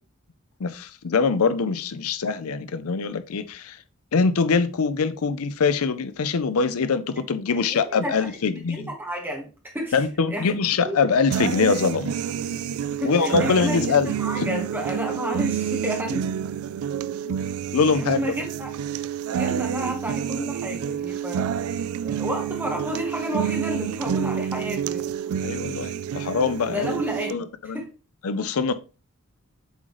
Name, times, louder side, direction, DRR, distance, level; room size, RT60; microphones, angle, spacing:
voice 1, 0.6-3.8 4.1-8.9 9.9-12.2 13.0-14.1 14.4-14.5 17.2-17.4 17.7-18.2 25.4-26.9 27.3-27.8 28.2-28.7, left 5 dB, 85° left, 0.5 m, -23 dB
voice 2, 7.5-10.0 10.3-10.5 10.8-11.0 13.0-16.3 18.0-18.7 19.3-25.1 26.7-27.9, equal, 10° right, 1.3 m, -31 dB
sound 1, 11.3-27.3, right 8 dB, 80° right, 0.3 m, -28 dB
8.1 x 3.8 x 3.1 m
head